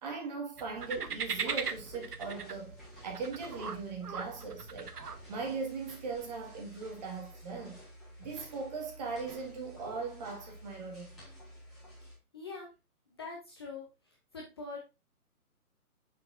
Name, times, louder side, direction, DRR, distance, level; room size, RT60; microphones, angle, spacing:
voice 1, 0.0-2.8 3.0-5.0 5.3-7.8 8.2-11.2, right 4 dB, 30° right, 1.8 m, -39 dB
sound 1, 0.6-5.6, right 6 dB, 85° right, 1.0 m, -39 dB
sound 2, 0.7-12.1, equal, ahead, 2.2 m, -52 dB
voice 2, 12.3-12.7 13.2-13.9 14.3-14.8, left 4 dB, 15° left, 0.7 m, -42 dB
7.2 x 6.6 x 2.6 m
figure-of-eight pair, 150°, 45 cm